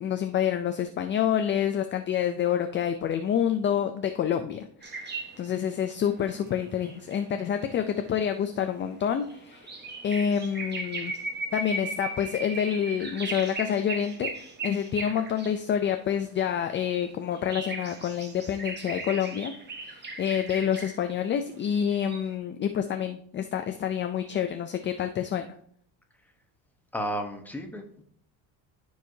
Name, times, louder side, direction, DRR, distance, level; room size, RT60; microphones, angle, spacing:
voice 1, 0.0-5.1 5.4-9.7 10.0-11.1 11.5-14.3 14.6-19.5 19.8-25.5, left 9 dB, 30° left, 7 dB, 0.4 m, -28 dB
sound 1, 4.8-15.6 16.2-21.1 21.9-22.3, right 3 dB, 25° right, 1.2 m, -38 dB
voice 2, 26.9-28.0, equal, 5° left, 3 dB, 1.0 m, -34 dB
14.0 x 4.7 x 2.7 m, 0.62 s
cardioid pair, 130°, 43 cm